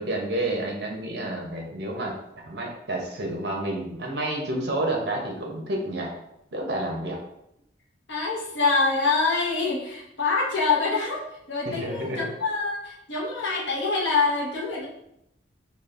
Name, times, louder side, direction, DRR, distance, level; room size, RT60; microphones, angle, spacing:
voice 1, 0.0-2.1 2.4-6.1 6.5-7.2 11.6-12.3, right 1 dB, 55° right, 0 dB, 0.7 m, -29 dB
voice 2, 8.1-14.9, left 4 dB, 70° left, -3 dB, 0.9 m, -25 dB
5.1 x 2.4 x 2.5 m, 0.80 s
head